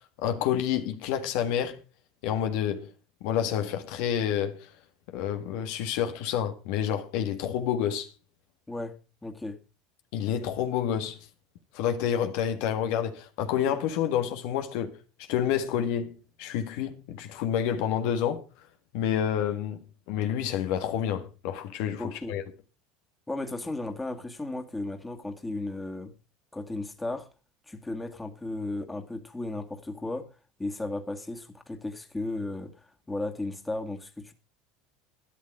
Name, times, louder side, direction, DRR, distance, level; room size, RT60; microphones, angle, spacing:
voice 1, 0.2-1.8 2.2-2.9 3.2-4.7 5.1-8.1 10.1-11.2 11.7-15.0 15.3-18.4 18.9-19.8 20.1-22.4, left 9 dB, 70° left, 1.6 m, -28 dB
voice 2, 9.2-9.6 22.0-22.3 23.3-26.1 26.5-27.3 27.7-30.3 30.6-34.3, left 2 dB, 10° left, 2.1 m, -35 dB
12.5 x 11.0 x 4.9 m
hypercardioid pair, 90°, 0 cm